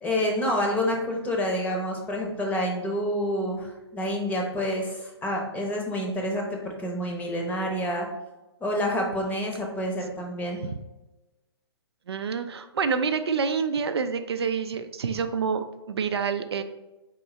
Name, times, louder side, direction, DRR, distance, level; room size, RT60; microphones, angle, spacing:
voice 1, 0.0-8.1 8.6-10.6, equal, 10° left, 0 dB, 0.8 m, -28 dB
voice 2, 12.1-16.6, right 6 dB, 70° right, 8 dB, 0.4 m, -27 dB
4.3 x 3.8 x 3.1 m, 1.0 s
figure-of-eight pair, 125°, 14 cm